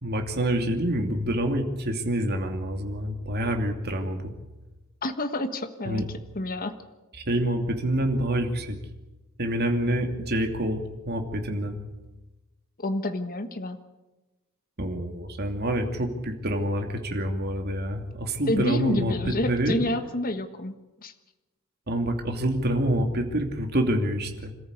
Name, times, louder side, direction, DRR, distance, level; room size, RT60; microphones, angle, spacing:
voice 1, 0.0-4.3 5.9-6.1 7.3-8.8 9.4-11.8 14.8-19.8 21.9-24.5, right 1 dB, 45° right, 4 dB, 2.8 m, -27 dB
voice 2, 5.0-6.0 6.3-6.7 12.8-13.8 18.5-20.7 21.0-21.1, left 1 dB, 40° left, 8 dB, 1.5 m, -28 dB
26.5 x 14.0 x 8.3 m, 1.1 s
head